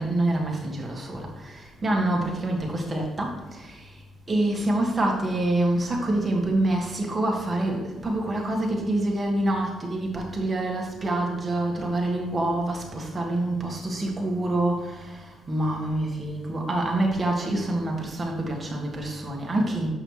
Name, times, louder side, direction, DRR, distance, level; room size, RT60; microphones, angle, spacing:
voice 1, 0.0-3.9 4.3-19.9, right 1 dB, 30° right, -1 dB, 1.6 m, -26 dB
7.0 x 5.7 x 3.1 m, 1.2 s
cardioid pair, 90°, 0 cm